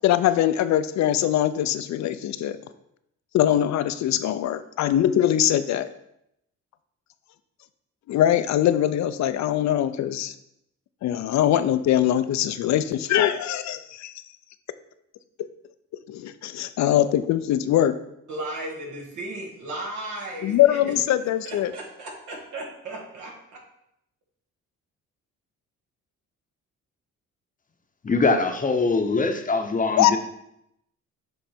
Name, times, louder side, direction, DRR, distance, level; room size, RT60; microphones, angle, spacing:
voice 1, 0.0-2.6 3.3-5.9 8.1-10.3 11.0-14.1 16.1-17.9 20.4-21.7 30.0-30.1, left 11 dB, 65° left, 12 dB, 0.5 m, -22 dB
voice 2, 18.3-21.0 21.4-23.6, right 1 dB, 80° right, 0 dB, 1.7 m, -35 dB
voice 3, 28.0-30.2, left 3 dB, 25° left, 6 dB, 0.8 m, -22 dB
7.4 x 3.3 x 4.3 m, 0.79 s
cardioid pair, 90°, 30 cm